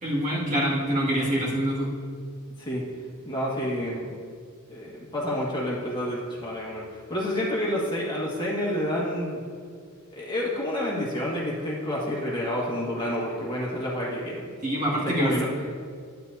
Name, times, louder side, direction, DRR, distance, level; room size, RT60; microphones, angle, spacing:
voice 1, 0.0-1.9 14.6-15.3, equal, 35° right, -6 dB, 2.2 m, -25 dB
voice 2, 3.3-4.1 4.7-6.8 7.1-9.4 10.1-14.4 15.0-15.7, left 1 dB, 20° left, -5 dB, 1.8 m, -29 dB
11.0 x 9.3 x 2.8 m, 2.1 s
head